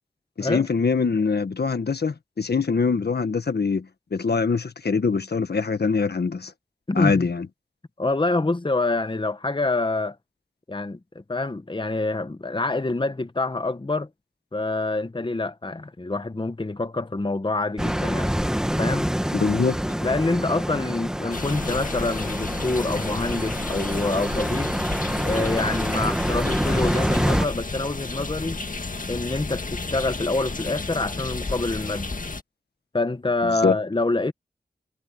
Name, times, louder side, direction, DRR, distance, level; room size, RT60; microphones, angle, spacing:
voice 1, 0.4-3.9 4.1-6.5 6.9-7.5 19.3-19.8 33.6-33.7, left 4 dB, 85° left, 1.4 m, -23 dB
voice 2, 8.0-10.2 10.7-14.1 14.5-18.3 18.8-19.1 20.0-24.7 25.2-28.6 29.1-32.1 32.9-34.3, left 2 dB, 30° left, 1.0 m, -26 dB
sound 1, 17.8-27.5, equal, 5° right, 1.4 m, -26 dB
sound 2, 21.3-32.4, left 3 dB, 55° left, 1.8 m, -32 dB
wide cardioid pair, 50°, 17 cm